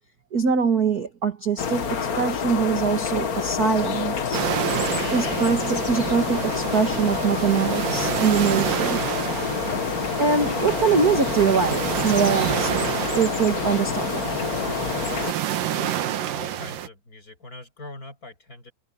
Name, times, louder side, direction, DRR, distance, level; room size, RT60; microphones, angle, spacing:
voice 1, 0.3-4.5 5.1-9.0 10.2-14.2, right 6 dB, 40° right, 1.5 m, -23 dB
sound 1, 1.6-15.3, left 6 dB, 80° left, 0.8 m, -27 dB
sound 2, 4.3-16.9, right 11 dB, 75° right, 3.2 m, -29 dB
voice 2, 15.7-18.7, left 2 dB, 25° left, 7.5 m, -42 dB
omnidirectional pair, 3.9 m